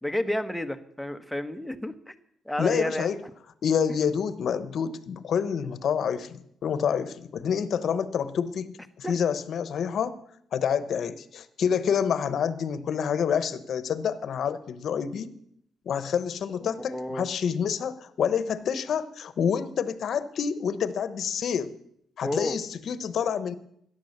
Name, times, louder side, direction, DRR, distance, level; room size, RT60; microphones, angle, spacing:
voice 1, 0.0-2.1 2.5-3.1 9.0-9.1 16.6-17.3 22.2-22.5, left 1 dB, 5° left, 8 dB, 1.1 m, -31 dB
voice 2, 2.6-3.2 3.6-10.2 10.5-15.3 15.8-21.8 22.2-23.5, left 7 dB, 60° left, 14 dB, 1.0 m, -28 dB
13.5 x 10.0 x 6.6 m, 0.72 s
cardioid pair, 90°, 0 cm